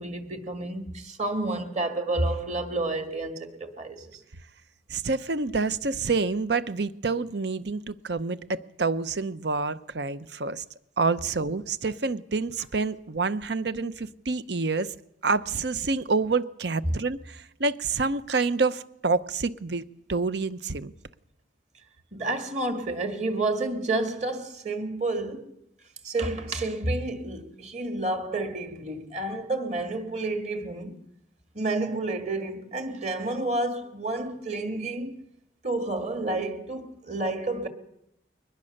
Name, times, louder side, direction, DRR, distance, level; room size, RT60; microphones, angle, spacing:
voice 1, 0.0-4.1 22.1-25.5 26.0-31.0 31.5-35.2 35.6-37.7, right 2 dB, 40° right, 2.1 m, -30 dB
voice 2, 4.9-10.6 11.0-14.9 15.2-20.9, right 4 dB, 65° right, 0.8 m, -28 dB
22.5 x 19.5 x 6.6 m
head